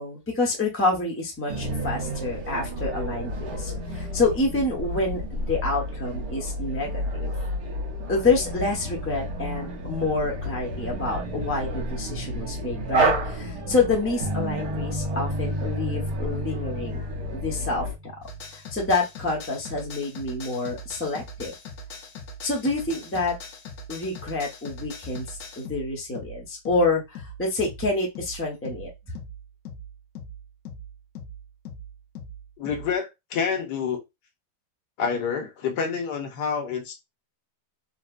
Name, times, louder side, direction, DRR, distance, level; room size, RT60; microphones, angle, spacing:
voice 1, 0.0-7.3 8.1-17.0 17.3-18.2 18.5-21.5 22.4-23.4 23.9-28.9, left 3 dB, 10° left, 0.7 m, -27 dB
sound 1, 1.5-17.9, right 1 dB, 75° right, 1.7 m, -31 dB
sound 2, 14.2-18.4, equal, 40° right, 0.6 m, -31 dB
sound 3, 18.2-33.0, left 2 dB, 65° left, 1.0 m, -41 dB
voice 2, 32.6-34.0 35.0-36.9, left 6 dB, 80° left, 1.4 m, -28 dB
4.0 x 2.2 x 2.4 m
omnidirectional pair, 1.8 m